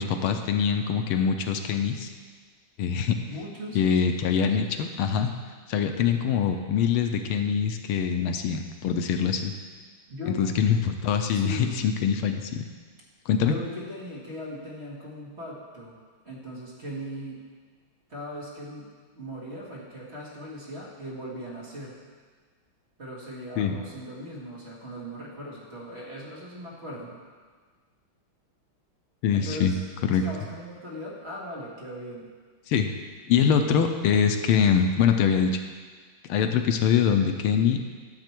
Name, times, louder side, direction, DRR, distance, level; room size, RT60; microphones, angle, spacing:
voice 1, 0.0-2.1 2.8-3.2 3.7-5.3 5.7-9.5 10.4-12.6 13.3-13.5 23.6-23.8 29.2-29.7 30.1-30.3 32.7-32.9 33.3-35.6 36.3-37.8, left 7 dB, 80° left, 6 dB, 1.5 m, -24 dB
voice 2, 3.3-3.8 10.1-10.5 11.3-11.9 13.4-15.9 16.2-17.4 18.1-18.9 19.2-22.0 23.0-27.2 29.3-29.8 30.0-32.3, equal, 30° right, -5 dB, 2.0 m, -39 dB
11.5 x 7.5 x 4.5 m, 1.5 s
omnidirectional pair, 2.4 m